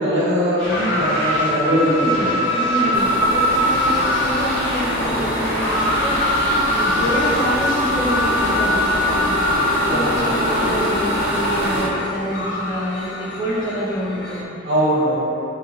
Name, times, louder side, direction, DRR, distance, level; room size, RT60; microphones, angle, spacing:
voice 1, 0.0-2.5 2.8-3.1 6.9-7.0 9.9-10.3 14.6-15.1, equal, 65° right, -13 dB, 1.5 m, -21 dB
sound 1, 0.6-10.7, equal, 5° left, 1.0 m, -32 dB
sound 2, 0.7-14.4, left 1 dB, 75° left, 0.4 m, -23 dB
voice 2, 1.6-9.3 9.9-14.7, equal, 30° left, -18 dB, 1.0 m, -27 dB
sound 3, 2.9-11.9, equal, 45° right, 0.6 m, -24 dB
3.6 x 2.5 x 2.6 m, 2.9 s
head